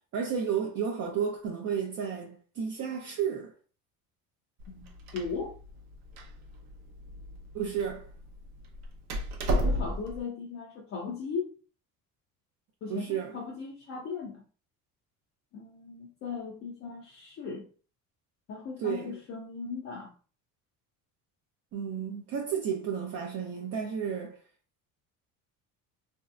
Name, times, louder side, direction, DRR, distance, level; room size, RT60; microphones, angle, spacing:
voice 1, 0.1-3.5 7.5-8.1 12.9-13.4 18.8-19.2 21.7-24.4, right 7 dB, 45° right, 0.6 m, -32 dB
Door, 4.6-10.2, equal, 75° right, 0.8 m, -34 dB
voice 2, 4.7-5.5 9.6-11.6 12.8-14.4 15.5-17.7 18.5-20.1, left 5 dB, 40° left, 0.5 m, -38 dB
3.1 x 2.7 x 2.4 m
cardioid pair, 130°, 36 cm